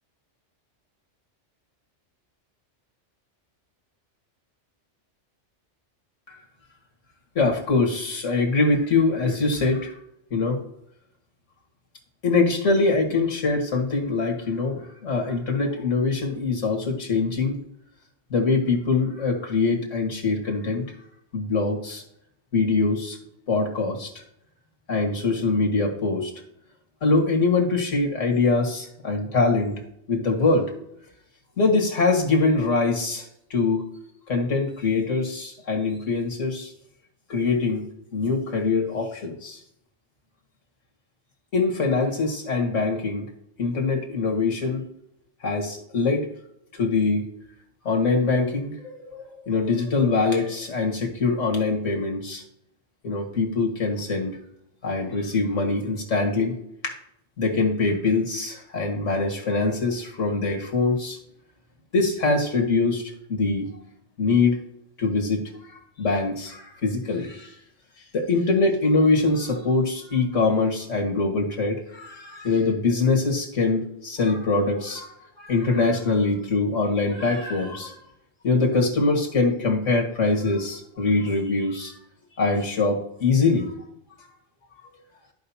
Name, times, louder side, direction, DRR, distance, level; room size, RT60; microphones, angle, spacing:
voice 1, 7.4-9.9 10.3-10.6 12.2-17.6 18.3-20.9 21.3-22.0 22.5-23.2 23.5-24.2 24.9-26.3 27.0-29.7 30.1-30.7 31.6-33.9 34.3-36.7 37.3-37.8 38.1-39.6 41.5-43.3 43.6-44.8 45.4-46.3 46.7-47.2 47.9-52.4 53.0-54.4 54.8-56.6 56.8-56.9 57.4-61.2 61.9-63.0 63.3-63.7 64.2-64.6 65.0-65.4 65.7-67.5 68.1-78.0 78.4-82.0 82.4-83.7, left 3 dB, 80° left, 1 dB, 2.1 m, -23 dB
14.0 x 5.1 x 2.8 m, 0.77 s
omnidirectional pair, 1.3 m